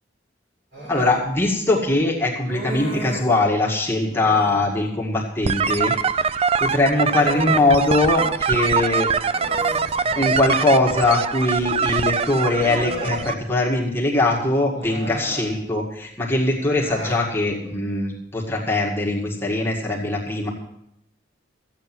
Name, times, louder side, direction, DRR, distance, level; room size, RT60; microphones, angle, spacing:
Human voice, 0.7-1.2 2.4-3.3 4.1-4.6 6.5-8.3 8.7-8.8 9.3-10.5 11.7-11.8 12.5-13.3 14.7-15.5 16.6-17.2, equal, 65° right, 6.5 m, -34 dB
voice 1, 0.9-6.0 6.3-6.4 6.6-9.1 10.2-20.5, left 2 dB, 10° left, -4 dB, 1.9 m, -21 dB
sound 1, 5.4-13.3, right 6 dB, 30° right, 0.4 m, -23 dB
14.5 x 8.6 x 6.1 m, 0.79 s
head